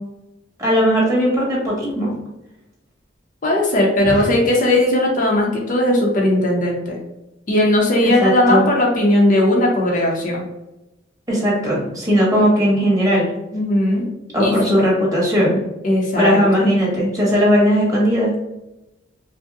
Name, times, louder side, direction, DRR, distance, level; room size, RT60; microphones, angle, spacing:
voice 1, 0.6-2.1 4.1-4.2 8.0-8.7 11.3-13.3 14.3-15.6 16.2-18.3, equal, 20° right, -5 dB, 1.4 m, -17 dB
voice 2, 3.4-7.0 7.5-10.4 13.5-14.0 14.4-14.7 15.8-16.4, left 1 dB, 45° left, -1 dB, 0.7 m, -17 dB
5.2 x 2.1 x 2.4 m, 0.94 s
head